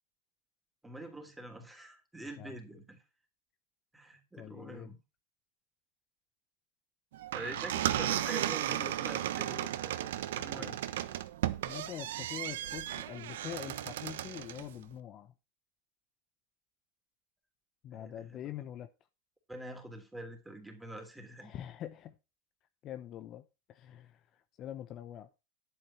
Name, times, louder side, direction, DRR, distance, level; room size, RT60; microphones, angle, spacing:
voice 1, 0.8-3.0 3.9-5.0 7.3-10.8 17.9-18.5 19.5-21.6, right 1 dB, 5° right, 3.3 m, -45 dB
voice 2, 4.4-4.9 10.5-10.8 11.6-15.3 17.8-18.9 21.4-22.1 22.8-23.4 23.7-25.3, left 11 dB, 35° left, 0.8 m, -44 dB
sound 1, 7.1-14.7, right 12 dB, 80° right, 1.1 m, -35 dB
10.5 x 9.1 x 4.3 m
supercardioid pair, 140°, 0 cm